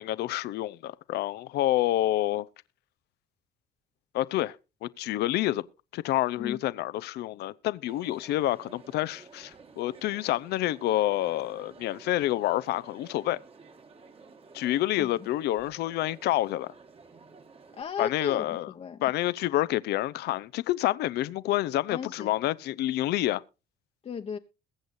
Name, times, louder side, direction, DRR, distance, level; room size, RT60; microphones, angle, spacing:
voice 1, 0.0-2.5 4.1-4.6 4.8-5.6 5.9-13.4 14.5-16.7 18.0-18.7 19.0-23.4, left 15 dB, 75° left, 0.7 m, -28 dB
Crowd, 7.9-17.8, right 4 dB, 35° right, 1.8 m, -52 dB
voice 2, 15.0-15.3 17.7-19.0 21.9-22.5 24.0-24.4, left 6 dB, 35° left, 1.0 m, -36 dB
22.0 x 7.9 x 2.6 m
cardioid pair, 110°, 17 cm